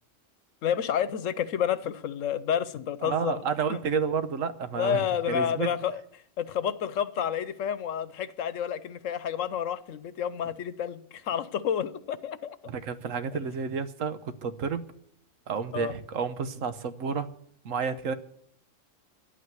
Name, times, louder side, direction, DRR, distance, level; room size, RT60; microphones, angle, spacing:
voice 1, 0.6-3.4 3.7-3.8 4.7-6.0 6.4-12.6 15.7-15.9, left 9 dB, 75° left, 1.1 m, -30 dB
voice 2, 3.0-5.7 12.6-14.9 15.5-17.3 17.6-18.1, right 6 dB, 80° right, 1.3 m, -30 dB
11.5 x 8.7 x 9.4 m
omnidirectional pair, 1.3 m